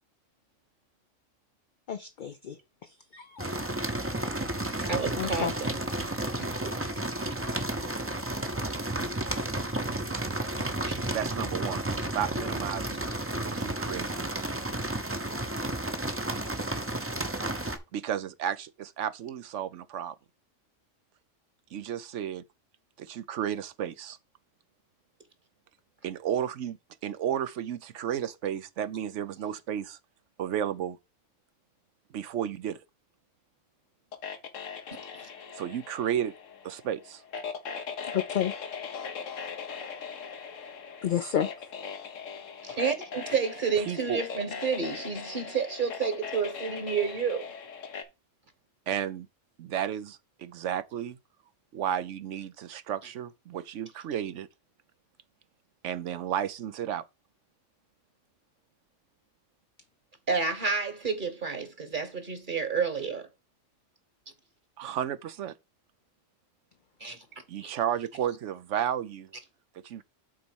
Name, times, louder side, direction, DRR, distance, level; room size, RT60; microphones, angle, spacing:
voice 1, 1.9-2.5 3.1-3.5 5.2-5.5 38.1-38.5 41.0-41.5, left 9 dB, 55° left, 0.5 m, -30 dB
sound 1, 3.4-17.8, right 1 dB, 15° right, 0.6 m, -32 dB
voice 2, 4.9-5.8 6.4-6.8 9.0-9.1 10.8-11.0 35.1-35.3 42.6-47.5 60.3-63.3 67.0-67.2 67.6-67.7, right 5 dB, 40° right, 1.4 m, -30 dB
voice 3, 11.1-11.8 12.1-13.0 13.4-14.1 17.9-20.1 21.7-22.4 23.0-24.2 26.0-26.8 27.0-30.0 30.4-31.0 32.1-32.8 35.6-36.3 36.6-37.2 43.9-44.2 48.9-49.3 49.6-51.2 51.7-54.5 55.8-57.0 64.8-65.5 67.5-69.3 69.8-70.0, right 9 dB, 70° right, 1.0 m, -32 dB
sound 2, 34.1-48.0, left 6 dB, 80° left, 1.3 m, -40 dB
6.2 x 4.2 x 6.2 m
omnidirectional pair, 1.3 m